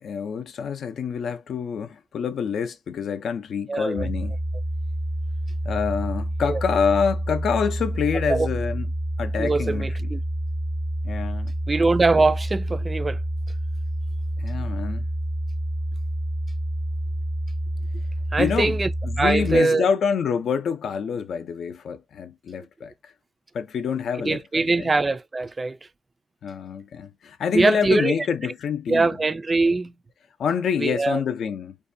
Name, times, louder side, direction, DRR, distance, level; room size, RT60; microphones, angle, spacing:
voice 1, 0.0-4.4 5.6-8.9 9.2-9.9 11.0-11.5 14.4-15.0 18.4-18.8 19.0-23.1 23.5-24.9 26.4-29.1 30.4-31.8, left 6 dB, 70° left, 0.4 m, -27 dB
voice 2, 3.7-4.1 6.5-6.6 8.3-8.5 9.4-10.2 11.7-13.2 18.3-18.9 19.2-19.9 24.2-25.8 27.5-28.1 28.9-29.9 30.8-31.2, right 3 dB, 25° right, 0.3 m, -22 dB
sound 1, 4.0-19.6, right 1 dB, 35° left, 0.7 m, -28 dB
2.6 x 2.2 x 2.5 m
cardioid pair, 105°, 0 cm